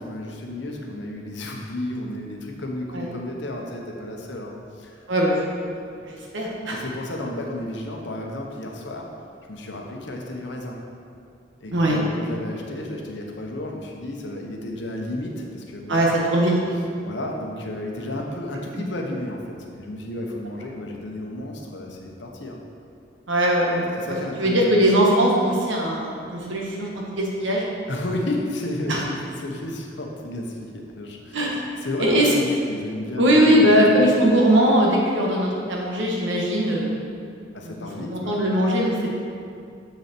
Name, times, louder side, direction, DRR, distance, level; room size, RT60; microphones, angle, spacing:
voice 1, 0.0-5.0 6.7-9.1 9.5-10.8 11.6-16.0 17.0-22.6 24.0-24.6 27.9-34.1 37.5-38.4, left 1 dB, 65° left, 0 dB, 1.0 m, -32 dB
voice 2, 5.1-5.5 5.8-6.8 11.7-12.0 15.9-16.7 18.7-18.8 23.3-27.7 28.9-29.0 31.3-31.6 32.0-32.3 33.2-37.0 37.6-39.1, equal, 70° right, -2 dB, 1.5 m, -20 dB
7.1 x 6.4 x 4.4 m, 2.4 s
head